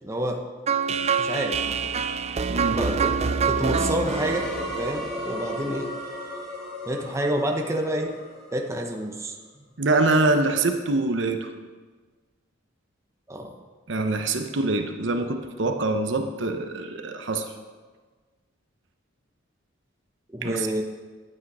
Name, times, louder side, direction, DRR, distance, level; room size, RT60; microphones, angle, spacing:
voice 1, 0.0-0.4 0.9-1.9 2.7-4.5 4.8-5.9 6.3-6.4 6.8-8.1 8.5-9.4 13.3-13.5 20.3-20.8, right 1 dB, 15° right, 2 dB, 0.9 m, -29 dB
sound 1, 0.7-5.6, right 5 dB, 35° right, 0.4 m, -26 dB
sound 2, 4.1-9.1, equal, 5° left, 2.7 m, -35 dB
voice 2, 9.8-11.5 13.9-17.5 20.4-20.7, right 2 dB, 70° right, 6 dB, 0.9 m, -24 dB
11.0 x 8.9 x 4.9 m, 1.4 s
head